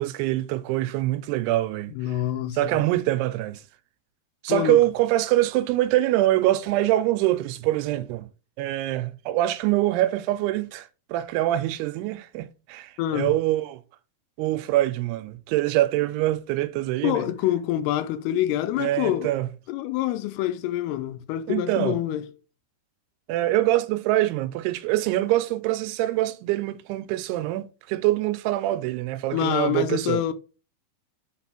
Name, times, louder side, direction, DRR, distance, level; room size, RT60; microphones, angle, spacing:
voice 1, 0.0-2.2 2.5-3.6 4.4-8.3 8.6-13.8 14.4-17.3 18.8-19.5 21.5-22.0 23.3-30.2, right 15 dB, 85° right, 2.6 m, -24 dB
voice 2, 1.9-2.8 4.5-4.8 13.0-13.3 17.0-19.3 19.7-22.3 29.3-30.3, left 12 dB, 85° left, 2.5 m, -26 dB
5.8 x 4.1 x 5.8 m
omnidirectional pair, 4.6 m